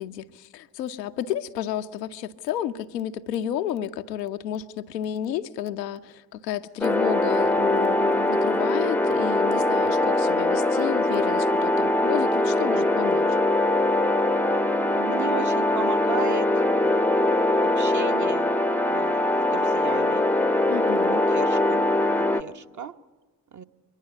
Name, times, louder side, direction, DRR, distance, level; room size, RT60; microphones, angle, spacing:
voice 1, 0.0-13.3 20.7-21.2, left 10 dB, 80° left, 0.8 m, -31 dB
sound 1, 6.8-22.4, left 1 dB, 5° left, 0.8 m, -22 dB
voice 2, 14.9-16.7 17.6-18.6 18.8-20.3 21.1-21.9 22.2-23.0 23.5-23.6, right 7 dB, 35° right, 1.1 m, -35 dB
23.0 x 20.0 x 8.3 m
figure-of-eight pair, 45°, 49 cm